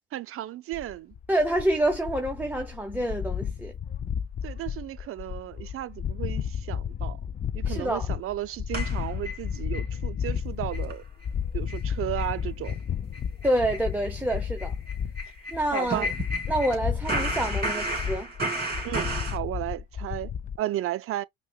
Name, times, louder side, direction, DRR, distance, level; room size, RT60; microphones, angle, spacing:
voice 1, 0.1-1.1 4.4-7.2 7.5-11.0 11.5-12.7 15.7-16.1 18.8-20.3 20.6-21.2, right 13 dB, 45° right, 0.4 m, -34 dB
sound 1, 0.7-20.6, left 7 dB, 25° left, 0.3 m, -33 dB
voice 2, 1.3-3.7 7.6-8.1 13.4-14.7 15.5-16.1 16.5-18.3, right 1 dB, 5° right, 0.7 m, -27 dB
sound 2, 8.7-9.9 10.3-10.4 10.7-10.9 11.2-11.3 11.7-11.9 12.2-12.4 12.6-12.8 13.1-16.8 17.1-19.4, right 1 dB, 30° right, 2.0 m, -33 dB
5.4 x 2.2 x 2.3 m
supercardioid pair, 85°, 31 cm